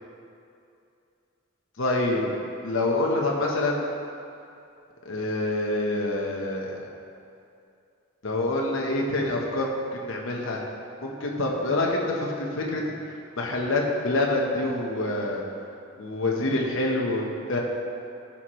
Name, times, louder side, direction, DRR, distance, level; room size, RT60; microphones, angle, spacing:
voice 1, 1.8-2.3 2.6-3.9 5.0-6.9 8.2-10.6 11.0-12.8 13.4-15.4 16.0-17.6, left 2 dB, 70° left, -1 dB, 1.0 m, -26 dB
14.5 x 5.9 x 3.1 m, 2.5 s
head